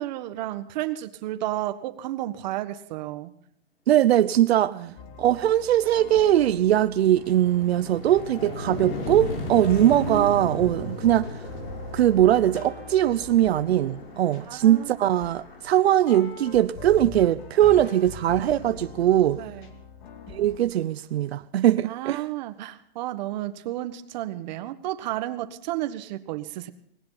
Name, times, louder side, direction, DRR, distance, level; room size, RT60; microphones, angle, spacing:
voice 1, 0.0-3.3 4.7-4.9 9.9-10.3 14.5-15.0 19.4-19.7 21.8-26.7, right 14 dB, 45° right, 1.5 m, -32 dB
voice 2, 3.9-4.7 5.2-11.3 11.9-19.4 20.3-22.2, right 12 dB, 90° right, 0.8 m, -21 dB
sound 1, 5.0-20.6, left 4 dB, 50° left, 2.6 m, -42 dB
sound 2, 5.4-5.5 5.9-16.7, left 2 dB, 70° left, 7.0 m, -37 dB
19.5 x 17.5 x 4.1 m
supercardioid pair, 160°, 30 cm